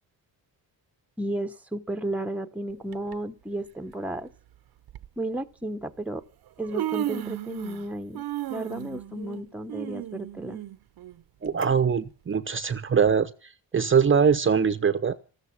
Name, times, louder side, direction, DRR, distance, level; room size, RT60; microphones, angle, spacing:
voice 1, 1.2-4.3 5.2-6.2 6.6-10.6, right 1 dB, 5° right, 7 dB, 0.9 m, -33 dB
Human voice, 2.9-3.1 4.2-4.3 4.9-5.1 6.1-6.2 6.5-7.9 8.1-11.7 12.1-12.2 13.0-13.1, right 14 dB, 65° right, 0.8 m, -34 dB
voice 2, 11.4-15.2, right 6 dB, 30° right, 12 dB, 0.8 m, -23 dB
14.5 x 13.5 x 6.1 m, 0.38 s
cardioid pair, 120°, 39 cm